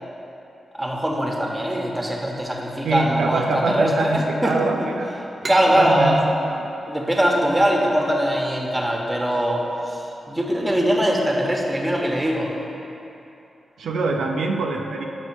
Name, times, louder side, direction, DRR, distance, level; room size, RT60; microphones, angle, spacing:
voice 1, 0.8-4.9 5.5-6.2 6.8-12.5, equal, 15° right, 0 dB, 1.2 m, -22 dB
voice 2, 2.8-5.1 5.7-6.2 6.5-6.7 13.8-15.1, right 3 dB, 85° right, 1 dB, 0.5 m, -24 dB
sound 1, 5.4-8.8, right 2 dB, 35° right, 0.9 m, -36 dB
6.2 x 5.0 x 6.2 m, 2.9 s
cardioid pair, 60°, 0 cm